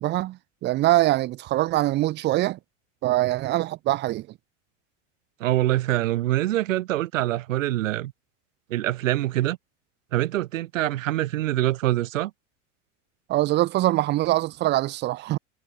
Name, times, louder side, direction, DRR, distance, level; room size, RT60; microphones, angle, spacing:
voice 1, 0.0-2.6 3.0-4.3 13.3-15.4, right 16 dB, 25° right, 2.3 m, -23 dB
voice 2, 5.4-8.1 8.7-9.6 10.1-12.3, right 15 dB, 85° right, 1.9 m, -24 dB
supercardioid pair, 170°, 38 cm